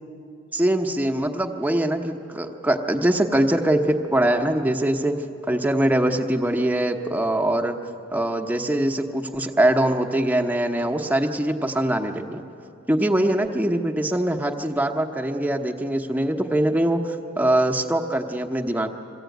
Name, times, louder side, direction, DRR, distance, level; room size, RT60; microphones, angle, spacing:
voice 1, 0.5-5.2 5.5-7.8 8.1-12.4 12.9-18.9, right 1 dB, 5° right, 4 dB, 0.9 m, -22 dB
22.5 x 15.5 x 9.2 m, 2.7 s
head